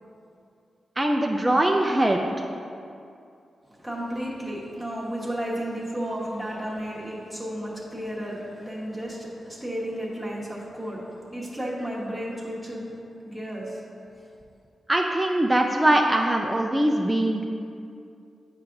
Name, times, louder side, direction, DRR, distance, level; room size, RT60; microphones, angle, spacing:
voice 1, 1.0-2.2 14.9-17.4, right 1 dB, 15° right, 1 dB, 0.4 m, -22 dB
voice 2, 3.6-13.9, equal, 5° left, -6 dB, 1.3 m, -33 dB
8.0 x 5.7 x 2.6 m, 2.5 s
cardioid pair, 75°, 0 cm